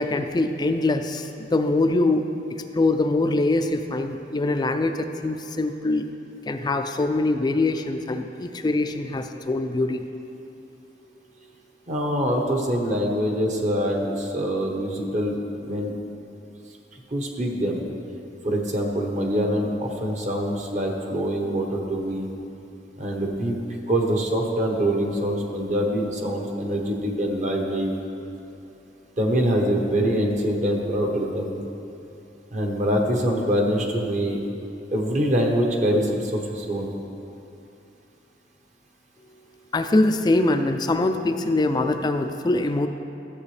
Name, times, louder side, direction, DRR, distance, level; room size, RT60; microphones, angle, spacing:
voice 1, 0.0-6.1 6.5-10.0 39.7-42.9, left 2 dB, 25° left, 7 dB, 0.3 m, -23 dB
voice 2, 11.9-15.9 17.1-17.8 18.4-22.3 23.0-23.6 23.9-27.9 29.2-31.6 32.5-34.4 34.9-36.9, equal, 45° right, 1 dB, 1.1 m, -24 dB
13.0 x 7.7 x 3.3 m, 2.7 s
head